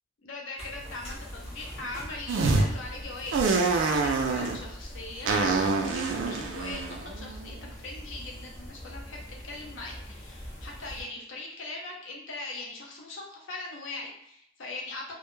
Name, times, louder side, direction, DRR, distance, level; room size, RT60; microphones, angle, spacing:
voice 1, 0.2-15.1, left 2 dB, 65° left, -1 dB, 0.6 m, -41 dB
sound 1, 0.6-11.0, equal, 30° left, 0.9 m, -43 dB
sound 2, 2.3-2.7 3.3-4.6 5.3-7.6, right 3 dB, 60° right, 0.3 m, -26 dB
2.1 x 2.0 x 3.0 m, 0.72 s
head